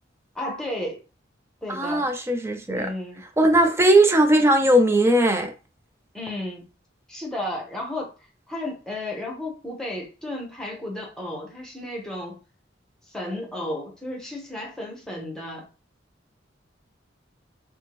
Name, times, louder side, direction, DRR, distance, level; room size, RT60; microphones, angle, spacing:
voice 1, 0.3-1.0 1.6-2.1 2.7-3.2 6.1-6.6 7.1-8.1 8.5-12.4 13.1-15.7, left 1 dB, 5° left, 0.9 m, -33 dB
voice 2, 1.7-2.9 3.4-5.5, right 1 dB, 15° right, 0.4 m, -18 dB
3.4 x 2.1 x 3.0 m
head